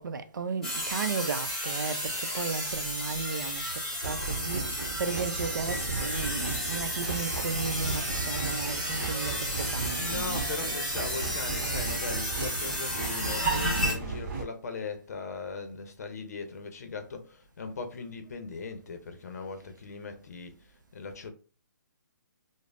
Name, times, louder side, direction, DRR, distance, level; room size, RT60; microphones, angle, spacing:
voice 1, 0.0-10.9, right 5 dB, 70° right, 0.5 m, -35 dB
sound 1, 0.6-13.9, equal, 5° left, 1.0 m, -32 dB
sound 2, 4.0-14.4, right 4 dB, 45° right, 1.5 m, -36 dB
voice 2, 10.0-21.3, left 4 dB, 50° left, 0.6 m, -39 dB
5.1 x 2.0 x 2.4 m
hypercardioid pair, 170°, 11 cm